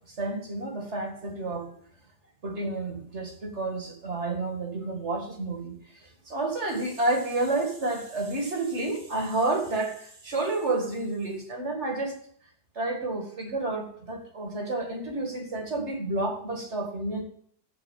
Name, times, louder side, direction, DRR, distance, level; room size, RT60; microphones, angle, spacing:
voice 1, 0.1-1.7 2.4-12.2 12.8-17.2, right 2 dB, 40° right, 3 dB, 2.2 m, -30 dB
14.0 x 4.8 x 7.1 m, 0.62 s
omnidirectional pair, 1.9 m